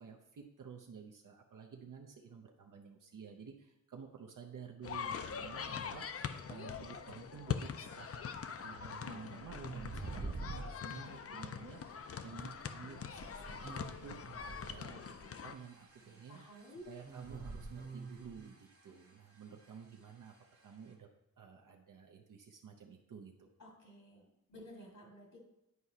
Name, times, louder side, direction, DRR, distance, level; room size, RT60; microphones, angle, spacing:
voice 1, 0.0-11.8 12.2-13.7 14.0-14.2 14.6-16.4 16.9-20.3 20.6-21.1 21.4-23.5, right 6 dB, 80° right, 1 dB, 0.7 m, -52 dB
sound 1, 4.8-15.5, left 7 dB, 50° left, 0.4 m, -43 dB
sound 2, 7.7-21.0, right 2 dB, 50° right, 1.3 m, -67 dB
sound 3, 8.5-8.7 9.5-10.7 11.9-12.0 13.1-14.9 17.0-18.5, right 3 dB, 30° right, 0.5 m, -45 dB
voice 2, 16.0-16.9 23.6-25.4, equal, 75° left, -2 dB, 1.9 m, -54 dB
9.5 x 4.8 x 2.8 m, 0.86 s
wide cardioid pair, 110°, 32 cm